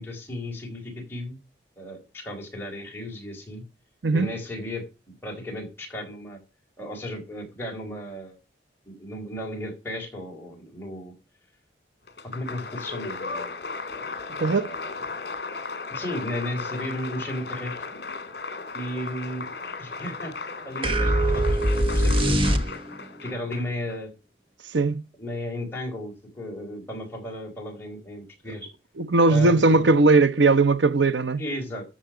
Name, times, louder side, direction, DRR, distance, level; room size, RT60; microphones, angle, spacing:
voice 1, 0.0-1.4 1.8-3.6 4.1-4.8 5.2-6.4 6.8-8.4 8.9-11.1 12.2-13.5 14.4-14.9 15.9-17.8 18.7-20.3 20.6-22.8 23.2-24.1 25.2-28.7 29.3-29.9 31.4-31.8, left 1 dB, 10° left, 4.1 m, -35 dB
Applause, 12.1-24.0, left 4 dB, 60° left, 2.2 m, -36 dB
voice 2, 14.4-14.7 24.7-25.0 29.0-31.4, right 3 dB, 80° right, 0.8 m, -19 dB
sound 1, 20.8-23.1, right 1 dB, 30° right, 1.1 m, -22 dB
13.5 x 7.4 x 4.9 m
head